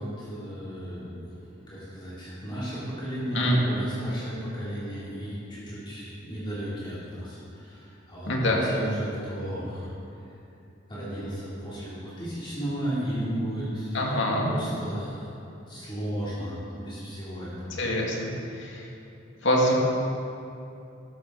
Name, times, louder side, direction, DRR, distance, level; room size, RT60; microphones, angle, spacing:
voice 1, 0.0-1.3 1.6-8.3 8.6-9.9 10.9-14.1 14.4-15.4 15.7-17.8, equal, 25° left, -10 dB, 3.3 m, -34 dB
voice 2, 8.3-8.6 13.9-14.5 17.8-18.1 18.6-18.8 19.4-19.7, left 1 dB, 70° left, -2 dB, 2.2 m, -24 dB
13.0 x 12.5 x 4.1 m, 2.7 s
head